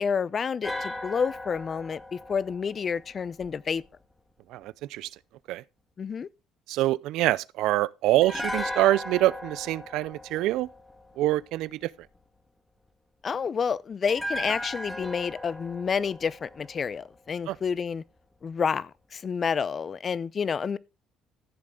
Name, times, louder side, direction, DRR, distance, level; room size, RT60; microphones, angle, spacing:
voice 1, 0.0-3.8 6.0-6.3 13.2-18.0 18.4-20.8, left 6 dB, 40° left, 0.6 m, -29 dB
sound 1, 0.6-3.8 8.2-11.4 14.1-17.3 17.6-17.7, left 1 dB, 5° left, 1.9 m, -37 dB
voice 2, 4.5-5.1 5.5-5.6 6.7-10.7 11.2-11.9 17.5-17.6, right 16 dB, 75° right, 0.4 m, -25 dB
14.5 x 7.5 x 3.7 m
supercardioid pair, 80°, 0 cm